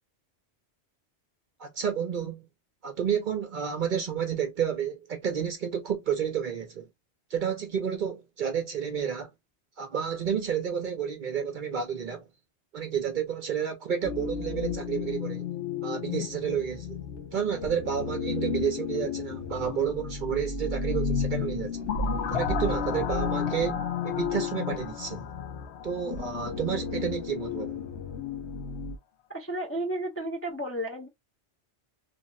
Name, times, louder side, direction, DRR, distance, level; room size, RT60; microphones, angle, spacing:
voice 1, 1.6-2.4 2.8-6.9 7.3-9.3 9.8-12.3 12.7-15.4 15.8-17.0 17.3-21.8 22.3-25.3 25.8-27.8, right 8 dB, 55° right, 0.6 m, -30 dB
sound 1, 14.0-29.0, left 6 dB, 90° left, 1.1 m, -33 dB
sound 2, 21.9-26.6, left 4 dB, 70° left, 0.9 m, -33 dB
voice 2, 29.3-31.1, right 1 dB, 20° left, 0.4 m, -32 dB
3.4 x 2.1 x 2.5 m
omnidirectional pair, 1.2 m